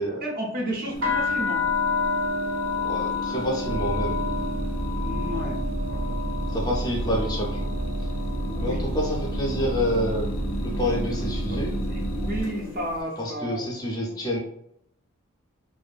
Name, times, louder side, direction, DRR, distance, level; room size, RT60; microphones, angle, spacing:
voice 1, 0.2-1.6 5.0-6.2 8.5-8.9 10.9-11.6 11.9-13.7, equal, 45° right, -1 dB, 0.6 m, -33 dB
sound 1, 0.8-13.2, left 1 dB, 80° left, 0.4 m, -36 dB
sound 2, 1.0-8.9 9.2-9.8 10.4-10.7 11.0-12.5, left 4 dB, 70° right, 0.8 m, -30 dB
voice 2, 2.8-4.2 6.5-7.7 8.6-10.3 10.6-11.8 13.2-14.4, equal, 20° left, -2 dB, 0.5 m, -28 dB
sound 3, 3.6-12.4, right 1 dB, 90° right, 0.4 m, -30 dB
2.5 x 2.5 x 2.3 m, 0.71 s
head